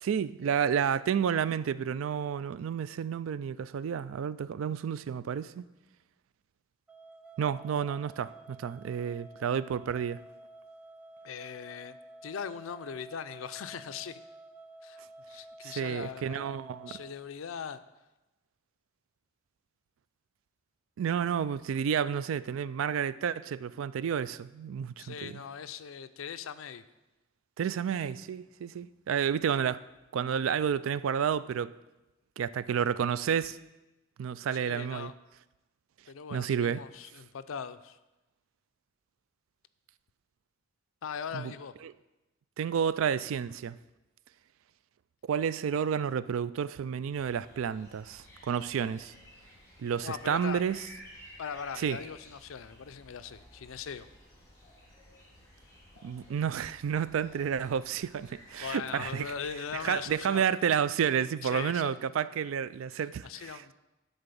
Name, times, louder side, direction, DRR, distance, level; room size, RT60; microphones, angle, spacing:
voice 1, 0.0-5.6 7.4-10.2 15.6-17.0 21.0-25.4 27.6-29.8 30.1-31.7 32.4-33.6 34.2-35.1 36.3-36.8 41.3-41.5 42.6-43.8 45.3-49.1 49.8-50.8 51.8-52.0 56.0-59.3 59.8-63.7, right 7 dB, 80° right, 0.3 m, -30 dB
sound 1, 6.9-17.1, right 2 dB, 5° right, 0.5 m, -51 dB
voice 2, 11.2-12.0 12.2-14.2 14.8-15.0 15.3-16.6 16.9-17.8 25.0-26.8 34.5-35.1 36.1-38.0 41.0-41.7 50.0-50.6 51.4-54.1 58.6-60.5 61.4-62.0 62.9-63.7, left 7 dB, 80° left, 0.5 m, -40 dB
sound 2, 47.1-60.2, left 1 dB, 15° left, 2.3 m, -54 dB
10.5 x 4.0 x 6.8 m
head